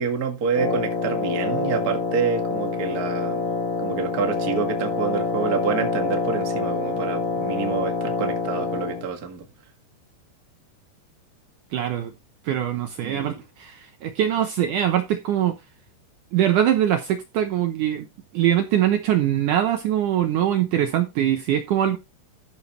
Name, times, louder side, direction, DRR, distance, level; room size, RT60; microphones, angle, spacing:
voice 1, 0.0-3.5 3.8-9.4 13.0-13.4, right 6 dB, 40° right, 1.3 m, -27 dB
Wind instrument woodwind instrument, 0.5-9.1, left 4 dB, 35° left, 2.4 m, -26 dB
voice 2, 11.7-12.1 12.5-15.6 16.3-18.1 18.3-22.0, right 11 dB, 80° right, 1.8 m, -22 dB
13.5 x 6.7 x 3.2 m
omnidirectional pair, 4.8 m